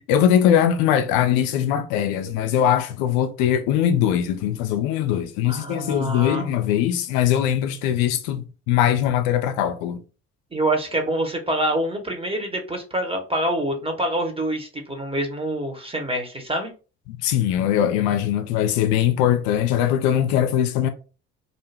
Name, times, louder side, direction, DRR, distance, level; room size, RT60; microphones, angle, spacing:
voice 1, 0.1-10.0 17.2-20.9, left 10 dB, 65° left, 0.5 m, -21 dB
voice 2, 5.5-6.5 10.5-16.7, right 1 dB, 15° right, 0.9 m, -26 dB
2.5 x 2.1 x 3.2 m
figure-of-eight pair, 50°, 39 cm